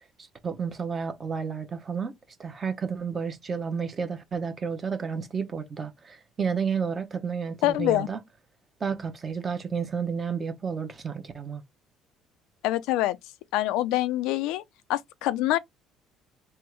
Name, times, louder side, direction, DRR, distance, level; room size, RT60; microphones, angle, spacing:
voice 1, 0.4-2.1 2.4-8.2 8.8-11.6, right 6 dB, 25° right, 0.8 m, -31 dB
voice 2, 7.6-8.1 12.6-13.2 13.5-14.6 14.9-15.6, left 15 dB, 85° left, 0.4 m, -25 dB
3.5 x 2.5 x 4.5 m
cardioid pair, 150°, 0 cm